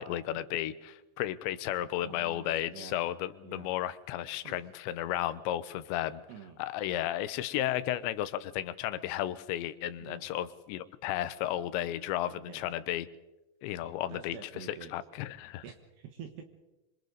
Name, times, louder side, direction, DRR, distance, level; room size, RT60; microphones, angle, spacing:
voice 1, 0.0-6.2 6.6-13.1 13.6-14.4 14.9-15.6, left 13 dB, 90° left, 14 dB, 3.1 m, -33 dB
voice 2, 2.0-3.0 3.4-3.7 4.4-4.6 6.3-6.6 10.0-10.3 12.4-12.7 14.1-14.9 15.6-16.4, right 7 dB, 75° right, 4 dB, 3.4 m, -47 dB
26.5 x 25.0 x 4.0 m, 1.0 s
omnidirectional pair, 5.0 m